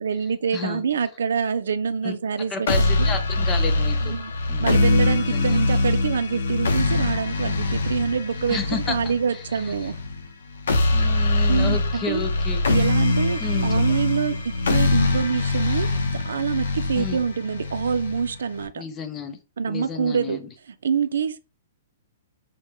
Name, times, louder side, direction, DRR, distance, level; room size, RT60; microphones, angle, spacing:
voice 1, 0.0-3.2 4.0-4.3 4.6-10.0 11.5-12.3 12.7-18.8 19.6-20.4 20.7-21.4, right 6 dB, 90° right, 0.4 m, -26 dB
voice 2, 0.5-0.8 2.0-2.2 2.5-4.2 4.5-4.8 5.3-5.6 8.5-9.1 10.9-12.8 13.4-13.7 17.0-17.2 18.8-19.4 19.7-20.5, left 5 dB, 15° left, 0.5 m, -31 dB
sound 1, 2.7-18.7, left 2 dB, 85° left, 0.7 m, -23 dB
4.6 x 2.1 x 2.9 m
hypercardioid pair, 155°, 0 cm